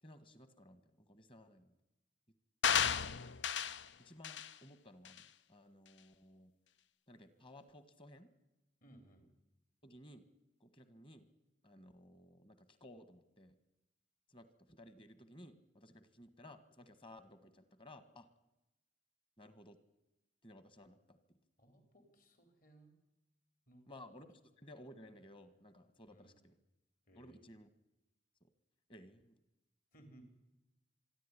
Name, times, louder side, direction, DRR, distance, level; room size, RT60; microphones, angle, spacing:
voice 1, 0.0-1.8 4.0-5.2 5.5-6.5 7.1-8.3 9.8-10.2 10.6-11.3 11.6-13.6 14.3-18.3 19.4-19.8 20.4-21.4 23.9-26.6 27.1-27.7 28.4-28.5 28.9-29.3, left 1 dB, 30° left, 12 dB, 1.7 m, -57 dB
sound 1, 2.6-3.9 4.2-4.5 5.1-5.2, left 8 dB, 85° left, 0.7 m, -33 dB
voice 2, 8.8-9.2 21.6-22.9 23.7-23.8 26.1-26.4 27.1-27.5 29.9-30.2, right 1 dB, 50° left, 7 dB, 4.2 m, -62 dB
26.0 x 11.0 x 10.0 m, 0.95 s
head